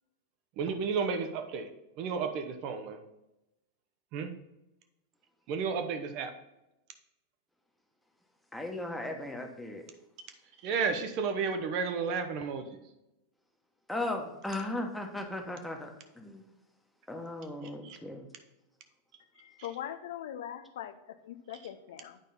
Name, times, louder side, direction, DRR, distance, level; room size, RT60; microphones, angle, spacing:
voice 1, 0.6-1.7 2.0-3.0 4.1-4.3 5.5-6.3 10.6-12.8 17.8-18.0, right 5 dB, 40° right, 6 dB, 0.8 m, -32 dB
voice 2, 8.5-9.9 13.9-16.4 17.1-18.3, left 1 dB, 5° left, 3 dB, 1.2 m, -37 dB
voice 3, 19.4-22.2, left 10 dB, 55° left, 10 dB, 0.5 m, -41 dB
9.0 x 5.2 x 4.2 m, 0.93 s
figure-of-eight pair, 90°, 0 cm